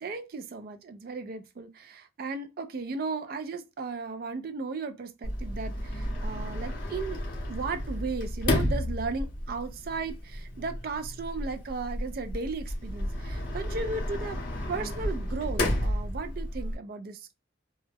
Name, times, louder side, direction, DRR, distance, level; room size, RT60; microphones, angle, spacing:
voice 1, 0.0-7.2 7.5-14.4 14.7-17.4, right 4 dB, 50° right, 0.3 m, -36 dB
Sliding door, 5.2-16.8, left 1 dB, 45° left, 0.7 m, -32 dB
2.2 x 2.0 x 3.3 m
head